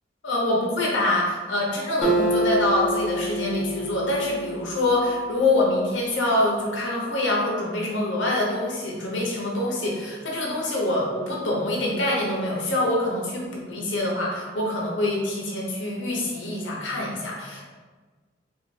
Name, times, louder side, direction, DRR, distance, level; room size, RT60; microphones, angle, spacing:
voice 1, 0.2-17.6, left 1 dB, 80° left, -3 dB, 0.8 m, -25 dB
Acoustic guitar, 2.0-5.6, right 1 dB, ahead, 0.8 m, -27 dB
4.4 x 2.4 x 2.6 m, 1.4 s
head